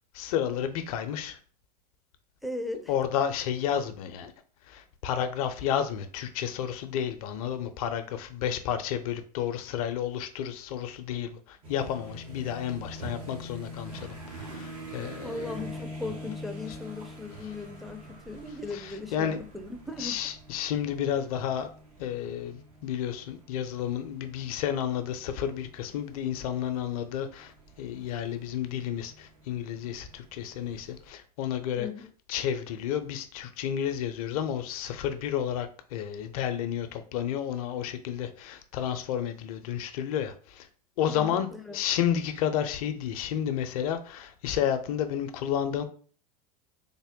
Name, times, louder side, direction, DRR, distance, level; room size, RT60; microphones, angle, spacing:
voice 1, 0.1-1.4 2.9-4.3 4.7-15.6 18.7-19.4 20.0-21.7 22.0-31.9 32.3-40.7 41.0-41.5 41.7-45.8, left 9 dB, 65° left, 0.5 m, -31 dB
voice 2, 2.4-2.9 15.2-20.2 31.8-32.1 41.1-41.8, left 2 dB, ahead, 0.5 m, -38 dB
sound 1, 11.6-31.1, equal, 80° right, 1.4 m, -45 dB
3.5 x 2.1 x 3.6 m
hypercardioid pair, 95°, 20 cm